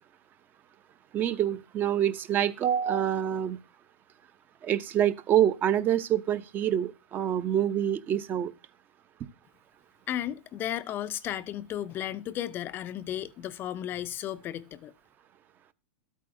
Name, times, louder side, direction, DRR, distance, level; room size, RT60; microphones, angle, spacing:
voice 1, 1.1-3.6 4.6-8.5, right 10 dB, 30° right, 0.7 m, -26 dB
voice 2, 10.1-14.9, left 11 dB, 30° left, 0.5 m, -34 dB
13.0 x 8.4 x 2.6 m
hypercardioid pair, 115°, 7 cm